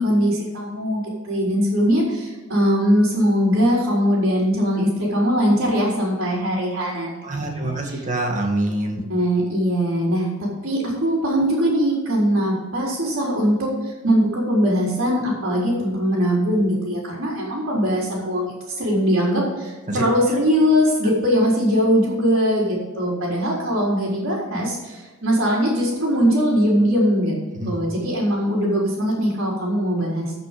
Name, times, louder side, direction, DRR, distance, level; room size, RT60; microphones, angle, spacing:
voice 1, 0.0-8.0 9.1-13.7 14.0-27.4 27.6-30.3, equal, 60° right, -6 dB, 4.1 m, -21 dB
voice 2, 7.2-9.0 19.9-20.0 27.6-27.7, right 1 dB, 35° right, 2 dB, 2.0 m, -25 dB
15.0 x 6.3 x 5.2 m, 1.3 s
head